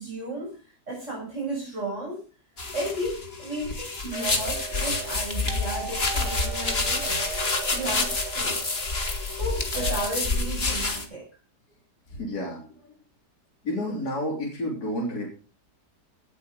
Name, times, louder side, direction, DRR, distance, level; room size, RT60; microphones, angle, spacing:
voice 1, 0.0-2.2 2.7-7.2 7.7-8.7 9.4-11.3, right 1 dB, 45° right, -3 dB, 6.3 m, -34 dB
sound 1, 2.6-11.0, left 3 dB, 35° left, 2.3 m, -28 dB
sound 2, 4.1-10.1, right 7 dB, 75° right, 2.2 m, -38 dB
voice 2, 12.1-13.0 13.6-15.3, left 1 dB, 65° left, -2 dB, 4.0 m, -31 dB
18.0 x 8.2 x 5.1 m, 0.36 s
omnidirectional pair, 1.8 m